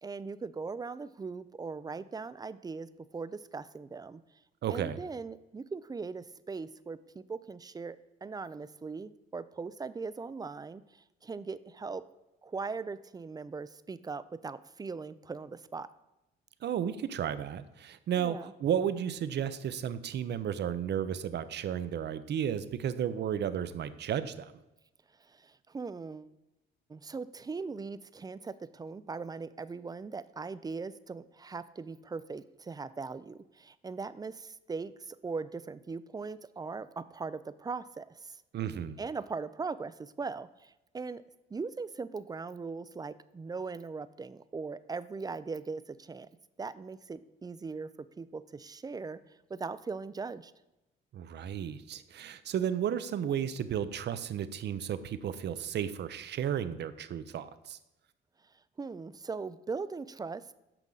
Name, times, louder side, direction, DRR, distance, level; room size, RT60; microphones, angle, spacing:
voice 1, 0.0-4.2 4.7-10.8 11.2-12.0 12.4-15.9 18.2-18.5 25.3-26.3 26.9-38.3 39.0-41.2 41.5-46.3 46.6-47.9 48.2-49.2 49.5-50.5 58.8-60.5, right 4 dB, 20° right, 15 dB, 0.4 m, -40 dB
voice 2, 4.6-5.0 16.6-24.5 38.5-39.0 51.1-57.8, right 9 dB, 60° right, 13 dB, 0.6 m, -33 dB
8.9 x 6.1 x 3.9 m, 0.96 s
cardioid pair, 90°, 20 cm